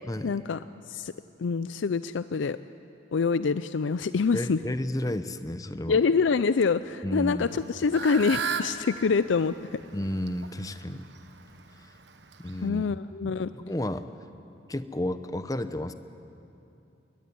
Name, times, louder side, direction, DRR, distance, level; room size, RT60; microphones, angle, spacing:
voice 1, 0.2-0.6 0.9-1.1 1.4-2.6 3.1-4.6 5.9-9.6 12.6-13.5, left 5 dB, 85° left, 13 dB, 0.5 m, -25 dB
voice 2, 4.3-6.0 7.0-7.5 9.9-11.1 12.4-14.1 14.7-15.9, left 1 dB, 20° left, 11 dB, 0.7 m, -32 dB
Fowl / Bird, 7.4-12.7, right 5 dB, 70° right, 1.2 m, -37 dB
22.0 x 19.5 x 9.8 m, 2.8 s
head